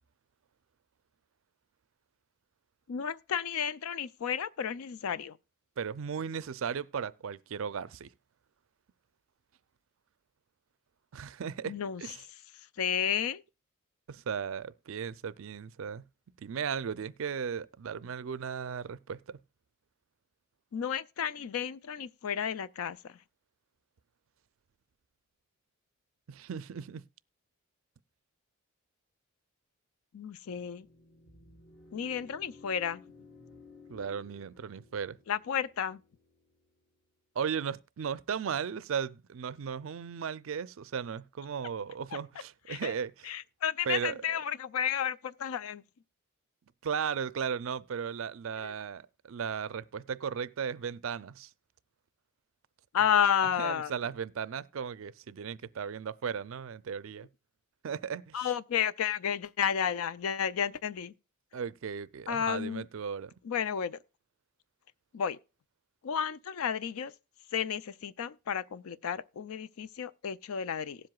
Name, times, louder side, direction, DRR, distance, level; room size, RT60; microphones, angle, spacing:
voice 1, 2.9-5.4 11.6-12.0 12.8-13.4 20.7-23.1 30.1-30.9 31.9-33.0 35.3-36.0 42.7-42.9 43.3-45.8 48.6-48.7 52.9-53.9 58.3-61.1 62.3-62.8 63.4-64.0 65.1-65.4 66.0-67.1 67.5-71.0, left 8 dB, 80° left, 0.4 m, -32 dB
voice 2, 5.8-8.1 11.1-12.3 14.1-16.0 16.4-19.4 26.3-27.0 33.9-35.2 37.4-43.3 43.9-44.2 46.8-51.5 53.4-57.3 57.8-58.5 61.5-63.3, right 7 dB, 65° right, 0.4 m, -36 dB
sound 1, 30.5-36.9, left 3 dB, 65° left, 2.7 m, -57 dB
18.0 x 7.7 x 2.3 m
head